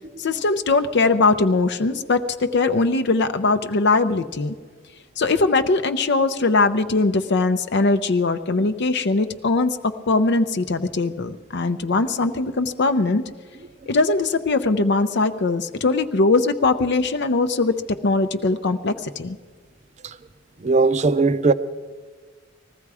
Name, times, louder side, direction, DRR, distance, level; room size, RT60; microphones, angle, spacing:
voice 1, 0.2-4.5 5.2-13.2 13.9-17.7 18.0-19.4, left 3 dB, 60° left, 0.6 m, -21 dB
voice 2, 20.6-21.5, right 3 dB, 35° right, 0.6 m, -18 dB
20.0 x 14.5 x 4.8 m
head